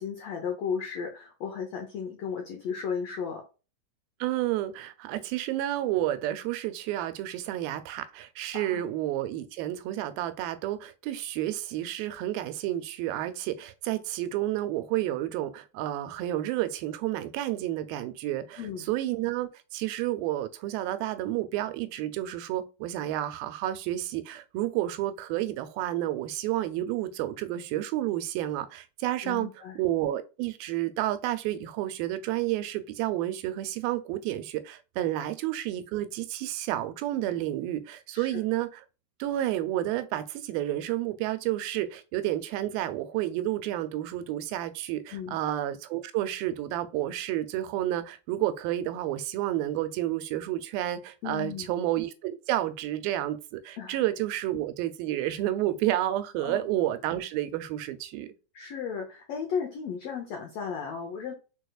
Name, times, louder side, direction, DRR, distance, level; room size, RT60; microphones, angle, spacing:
voice 1, 0.0-3.4 8.5-8.8 18.6-18.9 29.2-29.8 35.2-35.3 38.1-38.4 45.1-45.4 51.2-51.7 53.8-54.0 56.4-56.7 58.5-61.3, left 6 dB, 85° left, 1.4 m, -35 dB
voice 2, 4.2-18.6 18.9-29.5 29.8-38.8 39.2-58.3, right 14 dB, 90° right, 2.4 m, -30 dB
4.8 x 4.7 x 2.3 m
omnidirectional pair, 4.1 m